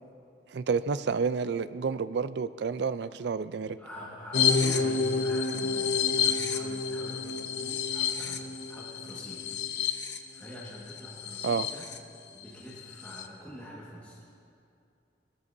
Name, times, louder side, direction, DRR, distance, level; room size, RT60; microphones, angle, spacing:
voice 1, 0.5-3.8 11.4-11.7, right 5 dB, 70° right, 14 dB, 0.4 m, -30 dB
voice 2, 3.8-11.9 12.3-14.2, equal, 10° left, -7 dB, 1.6 m, -45 dB
sound 1, 4.3-12.0 12.4-12.5 12.8-13.3, left 5 dB, 70° left, 0.7 m, -29 dB
20.5 x 13.5 x 2.7 m, 2.5 s
head